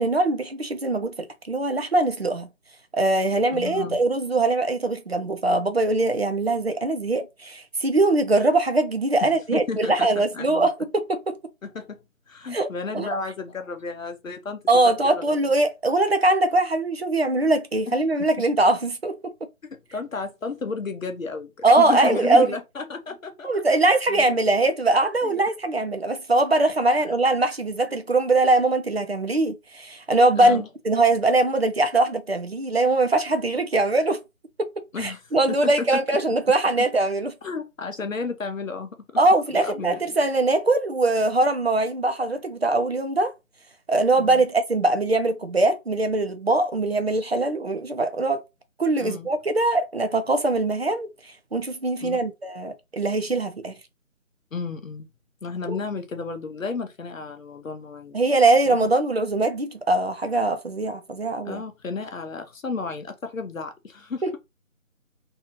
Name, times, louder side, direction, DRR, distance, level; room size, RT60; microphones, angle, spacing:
voice 1, 0.0-2.5 2.9-11.4 12.5-12.7 12.9-13.1 14.7-19.3 21.6-22.5 23.4-34.2 34.6-37.3 39.2-43.3 43.9-48.4 48.8-51.1 51.5-53.7 55.6-55.7 58.1-61.6 64.2-64.4, right 2 dB, 50° right, 0.5 m, -22 dB
voice 2, 3.5-4.0 9.2-10.7 11.6-12.0 12.3-15.3 17.9-18.0 18.2-18.3 19.7-23.5 24.1-24.4 25.2-25.4 27.1-27.2 30.4-30.7 34.9-36.0 36.8-36.9 37.4-39.0 39.5-40.2 44.2-44.4 49.0-49.3 52.0-52.2 54.5-55.1 55.4-58.2 58.7-58.9 61.4-64.4, left 4 dB, 70° left, 0.7 m, -33 dB
2.7 x 2.4 x 2.9 m
figure-of-eight pair, 160°, 41 cm